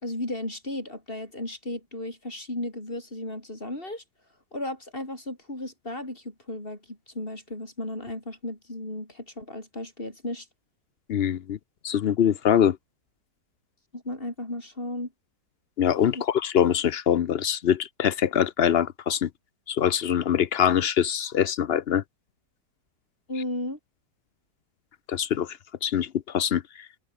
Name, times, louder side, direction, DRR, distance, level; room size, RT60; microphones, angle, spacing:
voice 1, 0.0-4.0 4.5-10.5 13.9-15.1 16.1-16.2 23.3-23.8, left 1 dB, 30° left, 6.4 m, -35 dB
voice 2, 11.1-11.6 11.8-12.8 15.8-19.3 19.7-22.0 25.1-25.6 25.8-26.6, left 9 dB, 65° left, 0.6 m, -23 dB
omnidirectional pair, 1.8 m